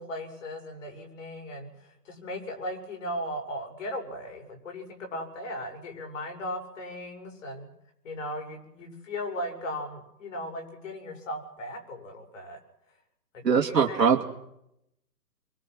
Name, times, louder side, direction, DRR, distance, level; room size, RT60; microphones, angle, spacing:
voice 1, 0.0-7.7 8.0-12.6 13.3-14.1, left 1 dB, 50° left, 3 dB, 7.3 m, -37 dB
voice 2, 13.4-14.2, right 6 dB, 75° right, -1 dB, 2.7 m, -22 dB
26.0 x 23.5 x 6.3 m, 0.83 s
hypercardioid pair, 150°, 49 cm